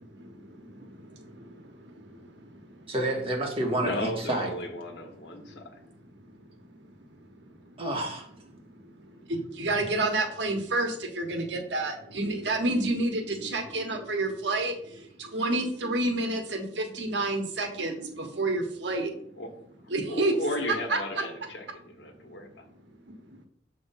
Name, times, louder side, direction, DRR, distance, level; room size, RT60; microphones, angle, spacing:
voice 1, 0.1-2.9 5.4-5.6 6.8-6.9 7.4-7.8 8.5-19.2 19.9-20.3 20.9-21.3, right 2 dB, 80° right, 4 dB, 1.1 m, -30 dB
voice 2, 2.9-4.5 7.8-8.3, right 1 dB, 35° right, 0 dB, 1.4 m, -29 dB
voice 3, 3.8-5.8 19.4-19.5 19.8-22.7, left 1 dB, 90° left, 4 dB, 1.2 m, -35 dB
7.0 x 3.1 x 5.5 m, 0.66 s
head